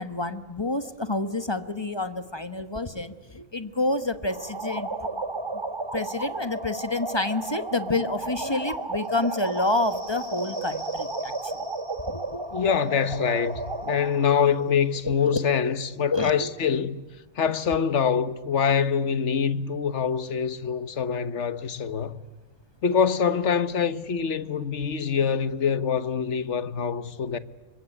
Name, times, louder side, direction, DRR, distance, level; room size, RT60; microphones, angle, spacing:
voice 1, 0.0-5.2 5.9-11.6 12.1-12.4 15.0-15.4 16.1-16.5, left 2 dB, 20° left, 1.2 m, -29 dB
sound 1, 4.3-14.3, right 2 dB, 20° right, 1.4 m, -33 dB
sound 2, 9.0-16.3, equal, 40° left, 3.2 m, -50 dB
voice 2, 12.5-17.0 17.4-22.2 22.8-27.4, left 7 dB, 65° left, 1.4 m, -25 dB
26.0 x 23.0 x 9.9 m
omnidirectional pair, 1.3 m